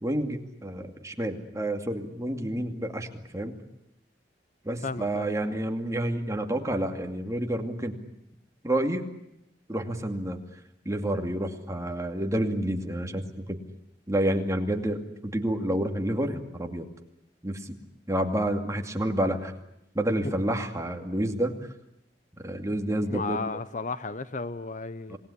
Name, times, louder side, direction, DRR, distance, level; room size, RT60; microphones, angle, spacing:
voice 1, 0.0-3.1 3.3-3.6 4.6-8.0 8.6-9.0 9.7-10.4 10.8-13.6 14.1-16.9 17.4-17.6 18.1-19.5 19.9-21.6 22.4-23.4 25.1-25.2, right 1 dB, 15° right, 2.4 m, -29 dB
voice 2, 4.8-5.3 23.1-25.2, left 3 dB, 45° left, 0.9 m, -33 dB
27.5 x 19.5 x 9.9 m
head